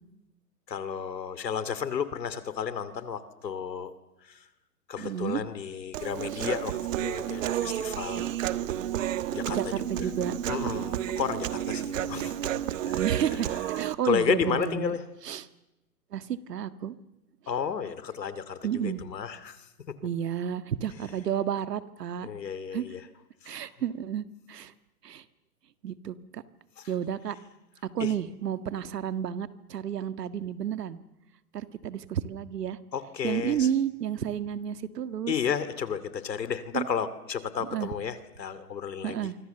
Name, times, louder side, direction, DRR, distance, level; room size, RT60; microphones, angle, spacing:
voice 1, 0.7-3.9 4.2-4.5 4.9-8.4 9.3-10.1 10.5-13.0 13.7-15.0 17.5-19.6 22.2-23.0 23.4-23.7 26.8-26.9 28.0-28.1 32.9-33.7 35.3-39.2, left 7 dB, 80° left, 14 dB, 2.7 m, -32 dB
voice 2, 5.0-5.4 6.3-6.4 9.5-10.4 13.0-13.5 13.8-15.0 15.2-15.4 16.1-17.0 18.6-19.0 20.0-22.3 22.7-22.9 23.5-24.7 25.0-25.2 25.8-26.4 26.9-27.4 27.9-31.0 31.5-32.8 33.2-35.3 36.7-36.9 37.7-37.9 39.0-39.4, right 9 dB, 70° right, 12 dB, 1.8 m, -31 dB
Human voice, 5.9-13.9, right 11 dB, 50° right, 1.4 m, -31 dB
28.0 x 25.0 x 7.0 m, 0.96 s
hypercardioid pair, 140°, 49 cm